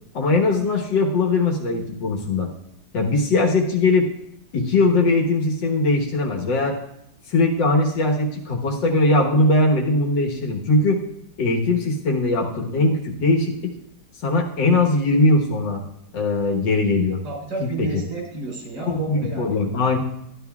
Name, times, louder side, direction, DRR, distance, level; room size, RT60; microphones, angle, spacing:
voice 1, 0.1-2.5 2.9-4.1 4.5-6.8 7.3-11.0 11.4-13.7 14.2-15.8 16.1-17.2 17.6-18.0 18.9-20.0, left 2 dB, 90° left, 0 dB, 2.0 m, -20 dB
voice 2, 17.2-19.5, right 3 dB, 90° right, -2 dB, 4.5 m, -31 dB
12.5 x 11.5 x 2.3 m, 0.80 s
omnidirectional pair, 1.9 m